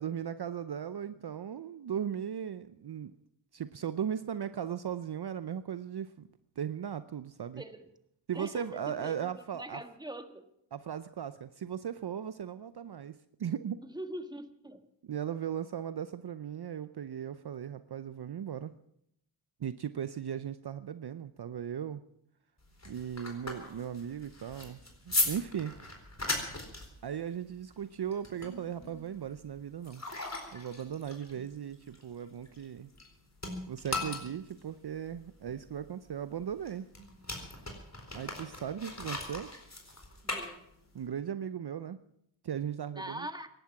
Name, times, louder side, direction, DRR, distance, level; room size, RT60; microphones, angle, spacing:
voice 1, 0.0-3.1 3.5-6.3 6.6-7.6 8.3-9.8 10.7-13.8 15.0-18.7 19.6-22.0 22.8-24.8 25.1-25.8 27.0-30.0 30.5-32.9 33.7-36.9 38.1-39.5 40.9-42.0 42.4-43.3, right 9 dB, 55° right, 13 dB, 0.7 m, -37 dB
voice 2, 7.6-7.9 8.3-10.5 13.9-14.8 40.2-40.6 43.0-43.5, right 1 dB, 10° right, 8 dB, 1.6 m, -42 dB
sound 1, 22.6-33.1 33.4-41.1, left 2 dB, 30° left, 4.1 m, -38 dB
17.5 x 11.5 x 5.9 m, 0.75 s
cardioid pair, 40°, 49 cm